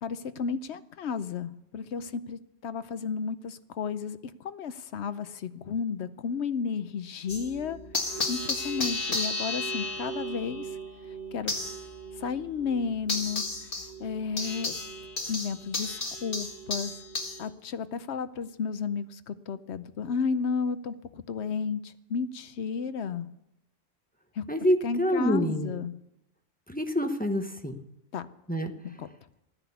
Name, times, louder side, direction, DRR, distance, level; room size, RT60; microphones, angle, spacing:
voice 1, 0.0-10.7 11.3-11.6 12.2-13.7 14.0-14.7 15.3-16.9 17.4-23.3 24.4-24.5 24.8-25.9 28.1-28.2 29.0-29.1, left 6 dB, 60° left, 12 dB, 0.9 m, -33 dB
sound 1, 7.3-17.5, left 2 dB, 45° left, 1.9 m, -34 dB
voice 2, 24.5-25.7 26.7-27.8 28.5-28.7, equal, 10° left, 6 dB, 0.7 m, -27 dB
14.0 x 10.0 x 7.0 m, 0.86 s
omnidirectional pair, 1.3 m